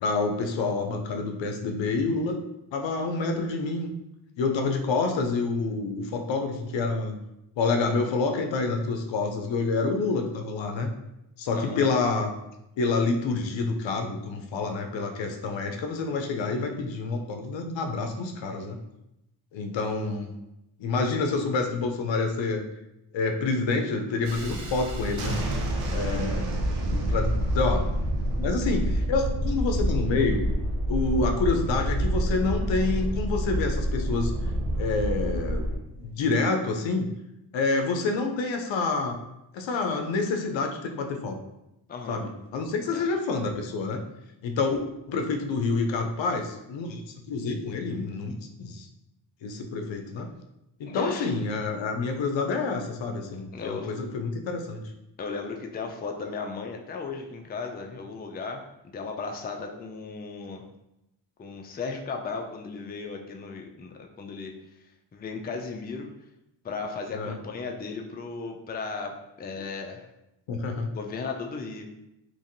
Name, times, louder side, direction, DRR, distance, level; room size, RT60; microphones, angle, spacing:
voice 1, 0.0-2.4 2.7-3.9 4.4-7.2 7.6-10.9 11.4-12.3 12.8-18.8 19.5-20.3 20.8-22.6 23.1-25.4 25.9-27.8 28.3-30.4 30.9-34.3 34.8-35.7 36.0-37.1 37.5-39.2 39.5-41.4 42.1-44.0 44.4-44.8 45.1-48.9 49.4-50.3 50.8-54.9 67.1-67.3 70.5-70.9, left 3 dB, 70° left, 4 dB, 0.5 m, -28 dB
voice 2, 11.5-11.9 41.9-42.2 42.7-43.1 50.9-51.3 53.5-53.9 55.2-60.6 61.4-64.5 65.1-66.1 66.6-70.1 70.9-71.9, left 4 dB, 20° left, 2 dB, 0.4 m, -36 dB
Thunderstorm, 24.3-35.8, equal, 90° right, 0.6 m, -27 dB
3.0 x 2.6 x 2.5 m, 0.88 s
cardioid pair, 45°, 47 cm